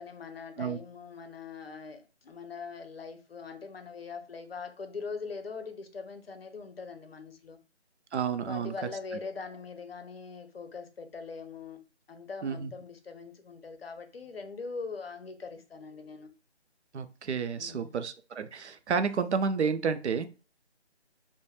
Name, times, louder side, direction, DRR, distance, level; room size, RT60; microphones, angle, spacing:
voice 1, 0.0-7.6 8.5-11.8 12.1-16.3 17.6-18.0, left 4 dB, 60° left, 0.6 m, -42 dB
voice 2, 8.1-8.7 12.4-12.7 16.9-20.3, right 6 dB, 75° right, 0.5 m, -30 dB
2.1 x 2.1 x 3.1 m
figure-of-eight pair, 160°, 34 cm